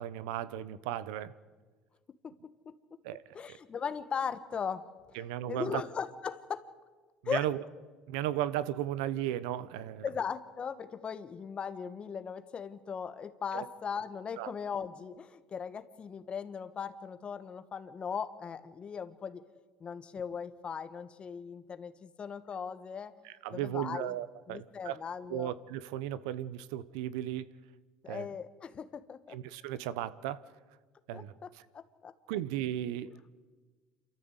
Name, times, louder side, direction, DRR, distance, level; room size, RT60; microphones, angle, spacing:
voice 1, 0.0-1.3 3.0-3.2 3.5-3.6 5.1-5.8 7.2-7.6 8.1-10.0 13.5-13.7 14.4-14.5 23.2-25.0 25.3-27.5 28.1-28.3 29.3-30.4 31.1-31.6 32.3-33.1, right 12 dB, 80° right, 0.8 m, -35 dB
voice 2, 3.3-4.9 5.5-6.7 7.2-7.5 10.0-19.4 19.8-23.1 23.5-24.1 24.5-25.5 28.0-29.4 31.1-31.5 32.0-32.1, left 6 dB, 35° left, 1.4 m, -38 dB
28.0 x 13.5 x 8.1 m
supercardioid pair, 85°, 3 cm